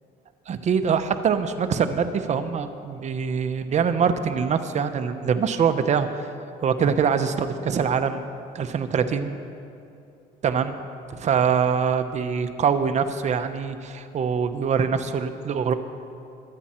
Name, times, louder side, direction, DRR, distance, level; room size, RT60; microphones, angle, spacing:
voice 1, 0.5-6.1 6.6-9.3 10.4-10.7 11.1-15.7, right 6 dB, 45° right, 9 dB, 0.9 m, -24 dB
23.0 x 8.5 x 4.4 m, 2.6 s
cardioid pair, 110°, 17 cm